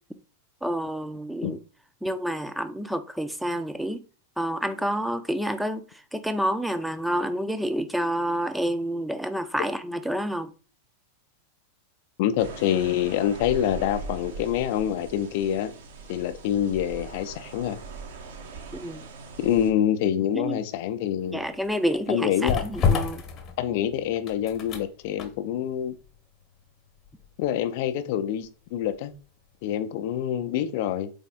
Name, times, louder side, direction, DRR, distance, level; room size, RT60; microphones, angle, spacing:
voice 1, 0.6-1.6 2.0-4.0 4.4-10.5 18.8-19.1 20.3-20.6 21.3-23.2, equal, ahead, 0.5 m, -29 dB
voice 2, 12.2-15.7 16.1-17.8 19.4-21.6 22.1-22.6 23.6-26.0 27.4-29.1 29.6-31.1, left 10 dB, 50° left, 0.5 m, -26 dB
sound 1, 12.4-19.7, right 4 dB, 60° right, 0.8 m, -41 dB
sound 2, 21.2-29.2 29.5-29.7, left 6 dB, 30° left, 0.9 m, -31 dB
4.0 x 3.5 x 3.6 m
figure-of-eight pair, 90°, 0 cm